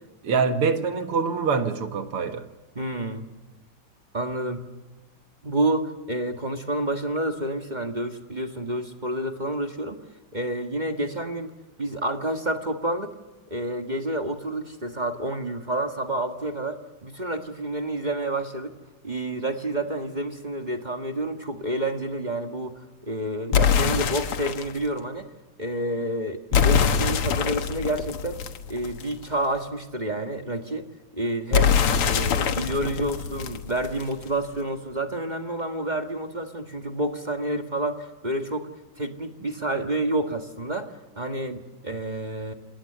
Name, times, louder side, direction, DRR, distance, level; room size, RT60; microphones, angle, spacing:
voice 1, 0.2-2.4 31.7-31.8, right 5 dB, 80° right, 2.6 m, -25 dB
voice 2, 2.7-3.2 4.1-4.7 5.4-10.0 10.3-13.1 13.5-18.7 19.0-25.3 25.6-28.4 28.7-30.9 31.1-31.8 32.1-38.7 39.0-42.5, right 1 dB, 20° right, 1.7 m, -29 dB
sound 1, 23.5-24.8 26.5-29.2 31.5-34.2, left 7 dB, 80° left, 2.3 m, -23 dB
29.5 x 19.0 x 6.9 m
omnidirectional pair, 2.4 m